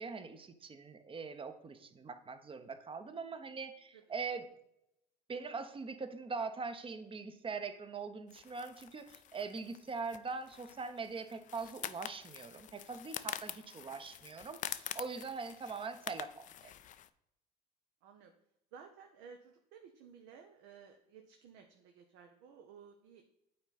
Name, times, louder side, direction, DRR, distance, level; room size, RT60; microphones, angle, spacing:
voice 1, 0.0-4.5 5.3-16.7, right 4 dB, 25° right, 10 dB, 0.8 m, -42 dB
sound 1, 8.3-17.1, left 11 dB, 40° left, 0.4 m, -46 dB
voice 2, 13.6-14.0 18.0-18.3 18.7-23.2, right 6 dB, 65° right, 5 dB, 0.8 m, -56 dB
8.7 x 4.0 x 4.1 m, 0.81 s
hypercardioid pair, 70°, 21 cm